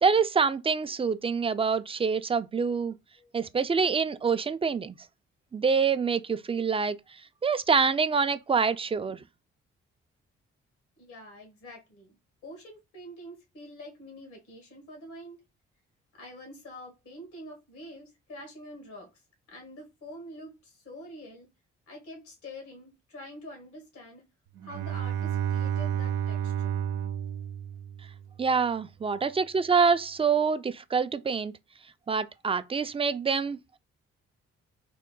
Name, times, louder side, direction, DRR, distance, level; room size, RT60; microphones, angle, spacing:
voice 1, 0.0-2.9 3.3-5.0 5.5-7.0 7.4-9.2 28.4-31.5 32.1-33.8, right 5 dB, 20° right, 0.4 m, -26 dB
voice 2, 11.0-12.2 12.4-15.4 16.2-19.2 19.5-21.5 21.9-24.3 24.6-26.7 29.1-29.3, left 1 dB, 85° left, 1.7 m, -46 dB
Bowed string instrument, 24.6-28.4, right 9 dB, 90° right, 0.5 m, -31 dB
3.6 x 2.1 x 3.8 m
hypercardioid pair, 45°, 29 cm